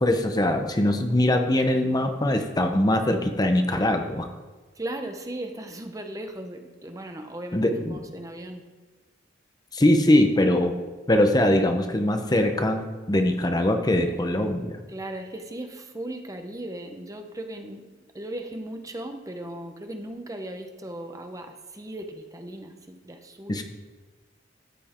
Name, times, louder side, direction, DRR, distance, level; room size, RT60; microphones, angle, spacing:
voice 1, 0.0-4.3 7.5-8.0 9.7-10.7 11.1-14.8 23.5-23.6, left 1 dB, 20° left, 5 dB, 0.8 m, -22 dB
voice 2, 4.7-8.6 14.9-17.9 18.1-23.6, right 1 dB, 20° right, 5 dB, 0.8 m, -37 dB
13.5 x 8.0 x 4.4 m, 1.3 s
head